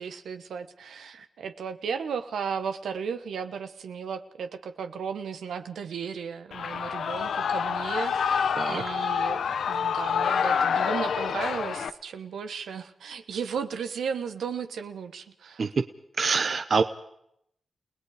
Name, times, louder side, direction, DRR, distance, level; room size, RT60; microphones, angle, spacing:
voice 1, 0.0-15.6, right 6 dB, 85° right, 8 dB, 1.2 m, -35 dB
Shout / Cheering, 6.5-11.9, left 7 dB, 80° left, 0.8 m, -27 dB
voice 2, 16.2-16.8, right 5 dB, 60° right, 11 dB, 0.9 m, -25 dB
30.0 x 18.0 x 5.0 m, 0.74 s
cardioid pair, 45°, 0 cm